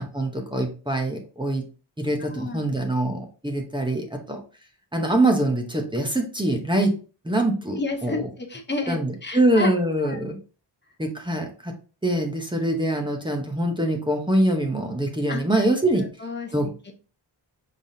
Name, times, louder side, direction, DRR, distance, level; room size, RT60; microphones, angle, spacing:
voice 1, 0.0-1.7 2.0-4.4 4.9-6.9 7.2-8.3 8.9-10.4 11.0-11.7 12.0-16.1 16.5-16.7, right 1 dB, 10° right, 2 dB, 0.8 m, -24 dB
voice 2, 2.3-2.7 7.7-9.7 10.0-10.2 15.3-15.6 16.0-16.9, left 3 dB, 25° left, 4 dB, 0.8 m, -31 dB
5.7 x 3.4 x 2.7 m, 0.35 s
wide cardioid pair, 165°, 44 cm